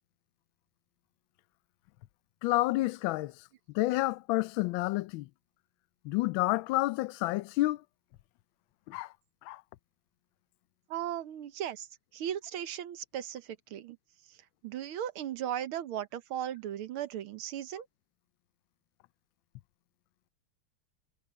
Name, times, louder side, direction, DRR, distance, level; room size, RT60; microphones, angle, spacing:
voice 1, 2.4-3.3 3.7-5.3 6.0-7.8 8.9-9.1 9.5-9.6, left 18 dB, 75° left, 1.3 m, -29 dB
voice 2, 10.9-11.9 12.1-14.0 14.6-17.9, right 10 dB, 80° right, 1.8 m, -37 dB
omnidirectional pair, 2.4 m